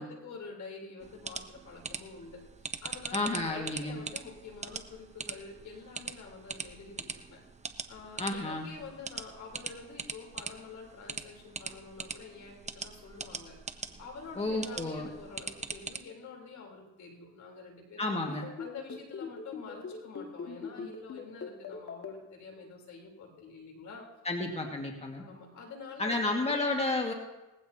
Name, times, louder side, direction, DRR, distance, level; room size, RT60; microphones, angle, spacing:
voice 1, 0.0-2.4 2.8-7.0 7.3-7.4 7.9-13.6 14.0-18.2 18.6-24.1 25.2-26.6 27.0-27.1, left 4 dB, 70° left, 0 dB, 3.9 m, -47 dB
sound 1, 1.0-16.0, right 4 dB, 20° right, 0.9 m, -42 dB
voice 2, 3.1-4.0 8.2-8.7 14.4-15.1 18.0-18.5 24.3-25.2 26.0-27.1, left 2 dB, 20° left, 1 dB, 2.0 m, -31 dB
sound 2, 18.3-22.1, left 5 dB, 50° left, 2.2 m, -40 dB
19.5 x 15.5 x 2.9 m, 1.0 s
cardioid pair, 90°, 30 cm